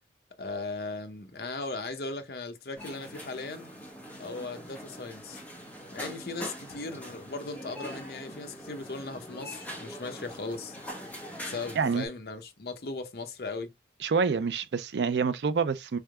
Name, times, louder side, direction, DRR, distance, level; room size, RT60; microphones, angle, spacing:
voice 1, 0.4-3.7 4.2-5.4 5.9-10.8 11.4-13.7, left 3 dB, 60° left, 0.7 m, -38 dB
sound 1, 2.8-12.1, equal, 10° left, 0.9 m, -43 dB
voice 2, 14.0-16.0, right 5 dB, 75° right, 0.4 m, -27 dB
3.7 x 3.4 x 2.2 m
head